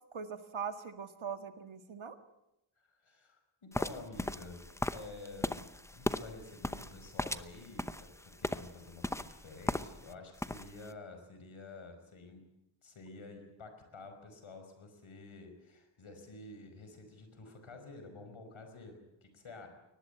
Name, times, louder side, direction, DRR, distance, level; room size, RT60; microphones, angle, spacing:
voice 1, 0.1-2.2, right 6 dB, 80° right, 9 dB, 1.8 m, -41 dB
voice 2, 2.8-4.7 4.9-12.4 12.8-19.7, left 3 dB, 85° left, 6 dB, 5.3 m, -50 dB
sound 1, 3.7-10.1 10.4-10.9, left 1 dB, 5° left, 0.9 m, -37 dB
23.0 x 19.5 x 8.2 m, 0.88 s
wide cardioid pair, 80°, 47 cm